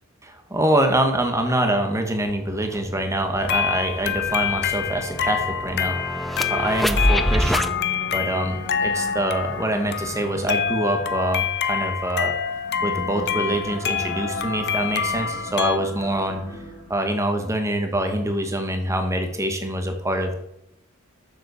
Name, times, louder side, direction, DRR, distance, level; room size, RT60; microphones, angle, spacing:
voice 1, 0.3-6.0 6.5-7.7 8.1-12.4 12.8-16.4 16.9-20.4, right 1 dB, 15° right, 5 dB, 1.4 m, -25 dB
sound 1, 2.3-2.4 2.7-7.7, equal, ahead, 0.6 m, -26 dB
sound 2, 3.4-15.8, left 8 dB, 55° left, 0.7 m, -27 dB
sound 3, 7.3-17.1, left 1 dB, 85° left, 3.8 m, -38 dB
7.4 x 7.2 x 6.9 m, 0.80 s
head